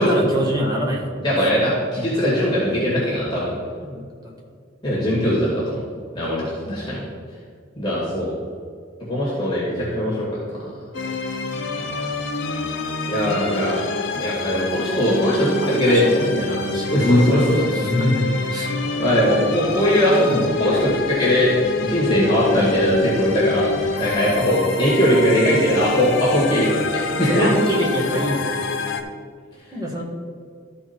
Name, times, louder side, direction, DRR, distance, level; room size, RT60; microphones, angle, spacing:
voice 1, 0.0-1.2 3.8-4.3 6.6-6.8 13.2-13.5 15.6-16.9 17.7-18.7 20.2-20.7 27.3-28.5 29.7-30.0, equal, 20° right, -3 dB, 1.6 m, -25 dB
voice 2, 1.2-3.5 4.8-5.8 6.1-7.0 7.8-8.3 9.1-10.6 13.1-13.7 14.1-16.0 16.9-17.8 19.0-20.3 20.6-27.5, equal, 25° left, -7 dB, 2.0 m, -20 dB
sound 1, 10.9-29.0, left 3 dB, 90° left, 0.9 m, -26 dB
13.0 x 4.5 x 4.4 m, 2.1 s
head